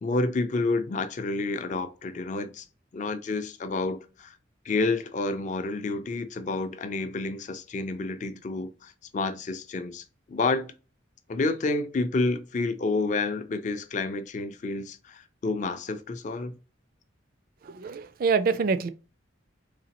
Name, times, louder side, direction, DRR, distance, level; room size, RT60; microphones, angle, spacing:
voice 1, 0.0-2.6 2.9-4.4 4.6-10.7 11.3-16.5, left 3 dB, 40° left, 0.4 m, -29 dB
voice 2, 17.6-18.9, right 5 dB, 45° right, 0.3 m, -25 dB
4.0 x 2.8 x 2.9 m
head